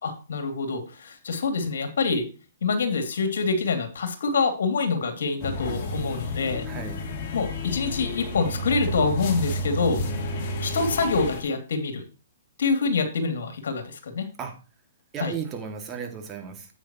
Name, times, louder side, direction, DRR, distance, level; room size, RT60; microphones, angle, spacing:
voice 1, 0.0-2.3 2.6-6.7 7.3-10.0 10.6-12.0 12.6-14.3 15.2-15.3, left 4 dB, 70° left, 7 dB, 2.8 m, -26 dB
sound 1, 5.4-11.4, left 1 dB, 40° left, 3.3 m, -31 dB
voice 2, 6.7-7.0 14.4-14.6 15.1-16.7, right 7 dB, 20° right, 4 dB, 2.3 m, -34 dB
9.9 x 8.6 x 3.1 m, 0.34 s
hypercardioid pair, 135°, 0 cm